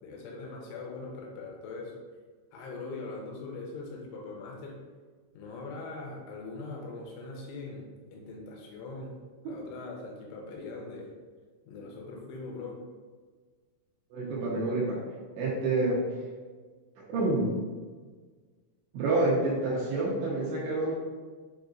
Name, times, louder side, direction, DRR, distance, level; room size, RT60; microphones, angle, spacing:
voice 1, 0.0-2.0 2.5-4.8 5.3-9.1 9.4-11.1 11.7-12.8, left 3 dB, 85° left, 0 dB, 3.0 m, -41 dB
voice 2, 14.1-15.0 15.4-16.0 17.1-17.5 18.9-20.9, right 2 dB, 75° right, -6 dB, 2.7 m, -28 dB
7.6 x 2.6 x 2.4 m, 1.5 s
omnidirectional pair, 5.6 m